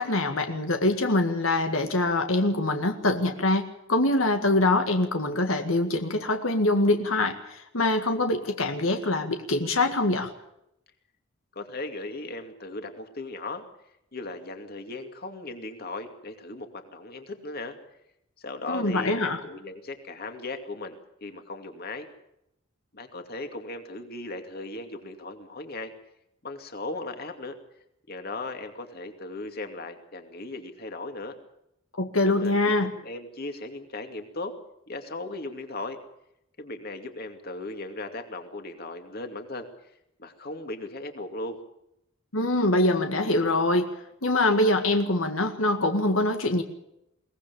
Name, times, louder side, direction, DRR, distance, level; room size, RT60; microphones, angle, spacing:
voice 1, 0.0-10.3 18.7-19.4 32.0-32.9 42.3-43.9 44.2-46.6, left 2 dB, 90° left, 6 dB, 1.9 m, -24 dB
voice 2, 11.6-13.6 14.1-17.8 18.4-22.1 22.9-25.9 26.4-27.6 28.1-31.3 32.2-32.7 33.0-34.5 34.9-36.0 36.6-39.7 40.2-41.6, left 2 dB, 50° left, 6 dB, 2.5 m, -37 dB
22.5 x 18.5 x 7.1 m, 0.81 s
head